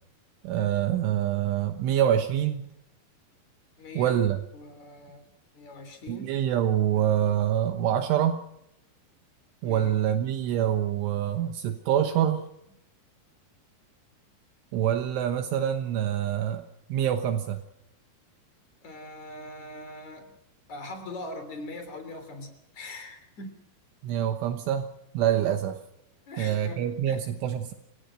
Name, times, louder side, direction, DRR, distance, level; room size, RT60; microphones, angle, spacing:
voice 1, 0.4-2.7 3.9-4.4 6.1-8.4 9.6-12.4 14.7-16.6 16.9-17.6 24.0-24.9 25.1-25.8 26.4-27.7, right 10 dB, 75° right, 7 dB, 3.5 m, -26 dB
voice 2, 3.8-4.2 4.5-5.2 5.5-6.3 9.6-10.2 18.8-20.3 20.7-23.5 26.3-27.2, left 2 dB, 40° left, 7 dB, 4.0 m, -41 dB
29.0 x 17.0 x 6.3 m, 0.81 s
omnidirectional pair, 5.8 m